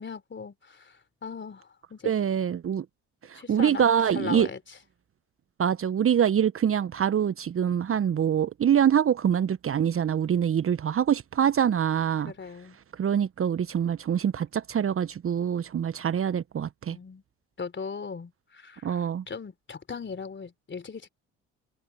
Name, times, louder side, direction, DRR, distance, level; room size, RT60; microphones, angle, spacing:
voice 1, 0.0-2.1 3.3-4.8 12.3-12.8 16.9-17.2 17.6-21.1, left 5 dB, 30° left, 3.6 m, -39 dB
voice 2, 2.0-2.8 3.3-4.5 5.6-12.3 13.0-17.0 18.8-19.2, right 8 dB, 35° right, 1.2 m, -25 dB
figure-of-eight pair, 55°, 36 cm